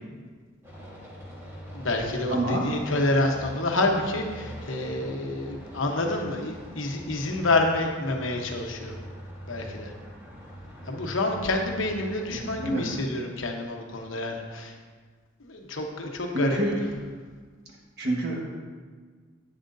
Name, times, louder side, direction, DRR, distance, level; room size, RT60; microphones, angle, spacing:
sound 1, 0.6-13.0, equal, 15° right, 1.7 m, -43 dB
voice 1, 1.7-9.0 9.5-9.9 10.9-14.8 15.4-16.6, left 2 dB, 75° left, 2 dB, 1.1 m, -28 dB
voice 2, 2.3-2.7 12.3-12.9 16.3-16.9 18.0-18.5, right 1 dB, 55° right, -2 dB, 1.5 m, -27 dB
10.5 x 8.6 x 2.7 m, 1.5 s
head